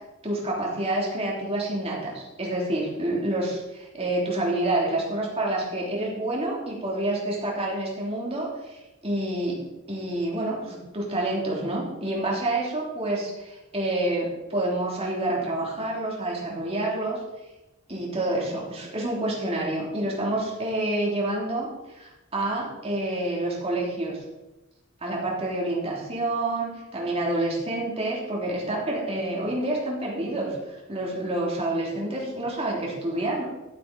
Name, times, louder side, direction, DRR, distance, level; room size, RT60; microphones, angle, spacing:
voice 1, 0.2-9.6 9.9-17.2 17.9-24.2 25.0-33.4, right 1 dB, 30° right, -3 dB, 3.4 m, -28 dB
14.5 x 8.1 x 4.3 m, 1.0 s
head